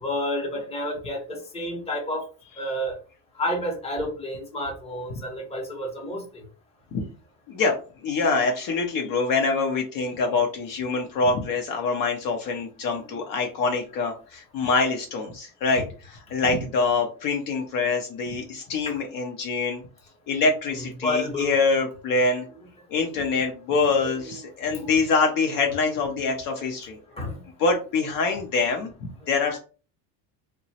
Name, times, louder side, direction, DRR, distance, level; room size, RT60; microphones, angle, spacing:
voice 1, 0.0-2.2 2.6-2.9 3.4-6.4 15.7-15.8 21.0-21.5 24.0-24.3 24.7-24.9 27.2-27.4 29.5-29.6, left 1 dB, 15° left, 0 dB, 0.8 m, -30 dB
voice 2, 7.5-19.8 20.3-22.4 22.9-27.0 27.6-28.9 29.3-29.6, left 4 dB, 50° left, 3 dB, 0.6 m, -25 dB
2.9 x 2.2 x 2.7 m, 0.36 s
supercardioid pair, 125°, 43 cm